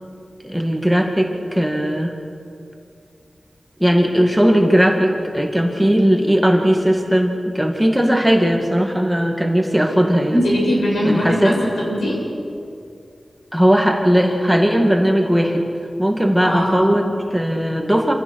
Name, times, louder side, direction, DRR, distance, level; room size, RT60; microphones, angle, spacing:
voice 1, 0.4-2.2 3.8-10.4 11.0-11.6 13.5-15.6 16.0-18.1, equal, 5° right, 2 dB, 2.2 m, -17 dB
voice 2, 10.3-12.2 16.4-17.0, equal, 85° left, -3 dB, 7.3 m, -20 dB
26.5 x 15.0 x 6.6 m, 2.4 s
wide cardioid pair, 75°, 0 cm